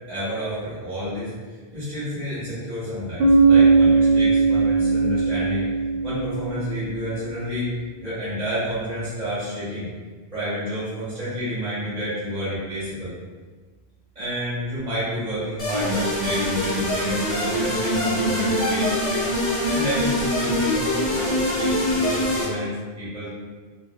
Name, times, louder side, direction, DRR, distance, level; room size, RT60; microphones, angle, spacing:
voice 1, 0.1-1.3 1.7-5.7 6.0-7.7 8.0-9.9 10.3-13.1 14.1-22.7 23.0-23.3, equal, 40° right, -13 dB, 1.1 m, -30 dB
Bass guitar, 3.2-7.0, right 4 dB, 65° right, 0.7 m, -18 dB
sound 1, 15.6-22.5, left 1 dB, 55° left, 0.9 m, -23 dB
2.6 x 2.4 x 2.4 m, 1.4 s
omnidirectional pair, 1.1 m